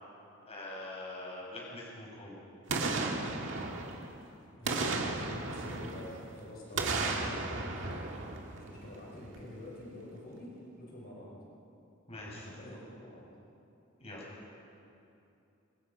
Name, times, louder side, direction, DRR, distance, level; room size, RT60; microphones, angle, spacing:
voice 1, 0.5-2.4 12.1-12.8 14.0-14.2, left 1 dB, 30° left, -4 dB, 6.0 m, -44 dB
Boom, 2.7-4.2 4.6-6.3 6.7-9.0 9.4-9.5, right 3 dB, 65° right, 2.0 m, -34 dB
voice 2, 4.5-8.1 8.5-11.3 12.3-13.2, left 1 dB, 50° left, -4 dB, 5.7 m, -47 dB
26.5 x 24.5 x 5.3 m, 2.7 s
head